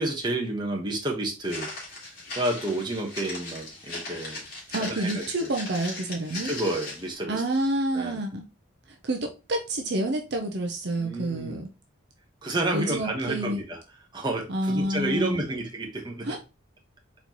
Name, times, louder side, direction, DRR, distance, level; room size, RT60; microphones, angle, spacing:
voice 1, 0.0-1.7 2.4-4.4 4.8-5.2 6.4-7.4 7.9-8.2 11.0-11.6 12.4-13.8 14.1-16.3, right 1 dB, 20° right, 1 dB, 1.1 m, -30 dB
Walk footsteps, 1.4-7.1, left 2 dB, 45° left, 2.3 m, -38 dB
voice 2, 4.7-6.5 7.3-8.5 9.0-11.7 12.7-13.6 14.5-15.4 16.2-16.4, right 1 dB, 55° right, 3 dB, 0.7 m, -28 dB
4.3 x 4.1 x 2.9 m, 0.29 s
head